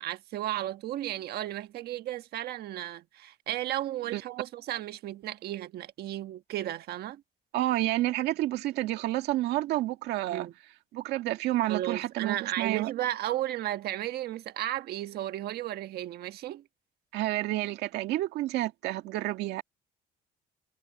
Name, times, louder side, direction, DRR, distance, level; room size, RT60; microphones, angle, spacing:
voice 1, 0.0-7.2 10.3-10.5 11.7-16.6, right 13 dB, 70° right, 1.3 m, -34 dB
voice 2, 7.5-10.5 10.9-12.9 17.1-19.6, right 16 dB, 85° right, 2.0 m, -29 dB
cardioid pair, 110°, 17 cm